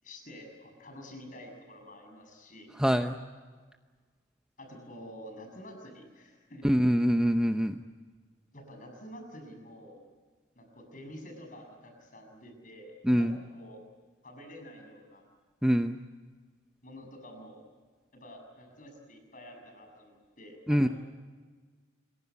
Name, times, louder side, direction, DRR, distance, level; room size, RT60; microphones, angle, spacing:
voice 1, 0.0-2.7 4.6-6.7 8.5-10.0 10.5-13.8 14.2-15.3 16.8-17.7 18.1-20.9, equal, 40° left, 4 dB, 6.9 m, -48 dB
voice 2, 2.8-3.2 6.6-7.7 13.1-13.3 15.6-16.0 20.7-20.9, equal, 5° right, 6 dB, 0.7 m, -24 dB
27.0 x 22.5 x 8.3 m, 1.5 s
head